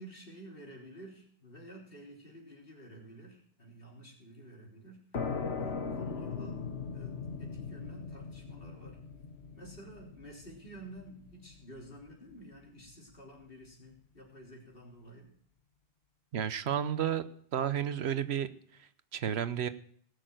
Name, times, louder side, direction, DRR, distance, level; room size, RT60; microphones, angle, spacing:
voice 1, 0.0-9.0 9.5-15.3, right 1 dB, 60° left, 3.8 m, -51 dB
sound 1, 5.1-12.5, left 5 dB, 85° left, 1.5 m, -39 dB
voice 2, 16.3-17.3 17.5-18.5 18.8-19.7, right 9 dB, 85° right, 1.1 m, -32 dB
18.5 x 6.7 x 7.7 m
omnidirectional pair, 1.1 m